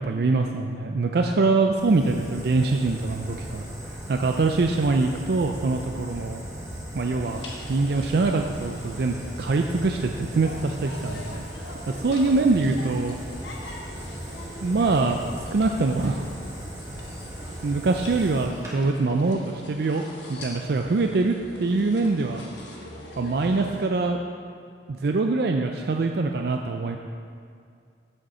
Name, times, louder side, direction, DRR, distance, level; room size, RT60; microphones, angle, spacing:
voice 1, 0.0-6.4 6.9-13.2 14.6-15.2 15.5-16.2 17.6-20.0 20.3-22.4 23.2-24.2 24.9-27.0, right 3 dB, 60° right, 3 dB, 0.4 m, -24 dB
Fire, 1.7-18.7, equal, 15° right, 1.5 m, -38 dB
sound 1, 7.2-23.9, left 1 dB, 85° left, 1.3 m, -43 dB
7.7 x 6.5 x 5.5 m, 2.3 s
head